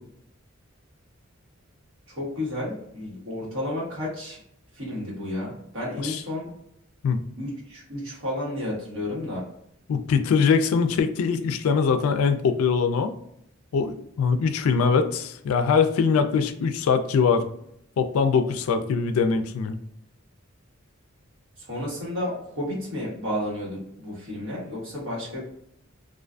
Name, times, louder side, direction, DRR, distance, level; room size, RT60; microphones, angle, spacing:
voice 1, 2.1-4.4 4.7-6.5 7.4-9.4 21.6-25.4, left 1 dB, 80° right, -5 dB, 1.2 m, -32 dB
voice 2, 9.9-13.1 13.7-17.5 18.0-19.8, left 5 dB, 90° left, 8 dB, 0.3 m, -22 dB
2.4 x 2.4 x 2.3 m, 0.74 s
head